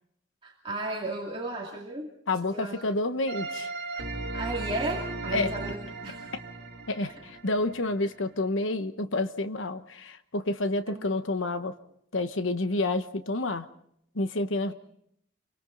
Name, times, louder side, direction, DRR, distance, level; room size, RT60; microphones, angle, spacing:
voice 1, 0.4-2.1 2.5-2.8 4.3-6.3 10.9-11.1 14.7-14.8, right 2 dB, 25° right, -2 dB, 2.5 m, -34 dB
voice 2, 2.3-3.7 5.3-5.5 6.9-11.7 12.1-13.7 14.1-14.7, left 2 dB, 85° left, 10 dB, 1.1 m, -29 dB
sound 1, 3.3-8.1, right 3 dB, 65° right, 2.4 m, -36 dB
27.5 x 23.5 x 4.0 m, 0.70 s
head